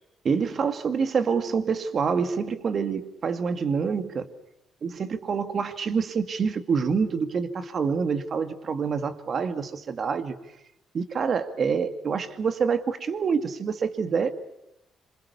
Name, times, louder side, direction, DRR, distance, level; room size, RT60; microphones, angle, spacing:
voice 1, 0.2-4.3 4.8-10.4 10.9-14.3, right 5 dB, 50° right, 9 dB, 2.2 m, -26 dB
27.0 x 26.5 x 7.0 m, 0.85 s
cardioid pair, 90°, 0 cm